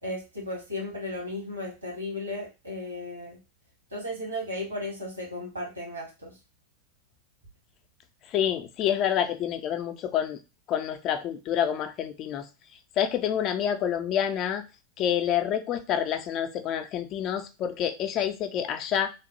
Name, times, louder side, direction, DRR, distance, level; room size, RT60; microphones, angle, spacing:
voice 1, 0.0-3.4 3.9-6.4, left 1 dB, 80° right, -1 dB, 1.4 m, -35 dB
voice 2, 8.3-10.4 10.7-12.5 13.0-14.6 15.0-19.1, left 9 dB, 35° left, 9 dB, 0.3 m, -28 dB
3.0 x 2.1 x 2.9 m, 0.28 s
figure-of-eight pair, 90°, 0 cm